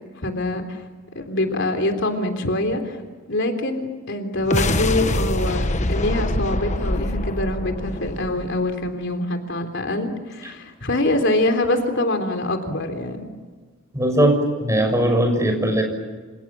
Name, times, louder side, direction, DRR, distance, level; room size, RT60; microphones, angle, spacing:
voice 1, 0.2-0.8 1.2-3.0 3.3-13.3, left 1 dB, 60° left, 6 dB, 3.5 m, -24 dB
sound 1, 4.4-8.9, left 1 dB, 35° left, 1.3 m, -24 dB
voice 2, 13.9-15.8, right 1 dB, 15° right, 5 dB, 6.6 m, -19 dB
29.0 x 28.0 x 7.4 m, 1.4 s
head